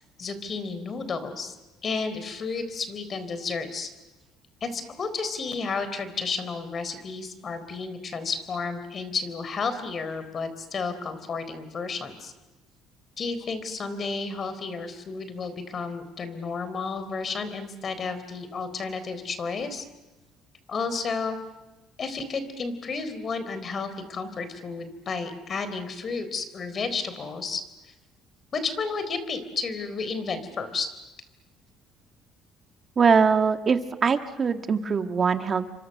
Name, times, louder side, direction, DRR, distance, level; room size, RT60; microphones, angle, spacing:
voice 1, 0.2-1.6 1.8-3.9 4.6-12.3 13.2-19.8 20.7-21.4 22.0-27.6 28.5-30.9, left 4 dB, 45° left, 11 dB, 3.9 m, -32 dB
voice 2, 33.0-35.7, right 6 dB, 40° right, 8 dB, 1.7 m, -22 dB
29.5 x 25.0 x 6.7 m, 1.1 s
supercardioid pair, 85°, 0 cm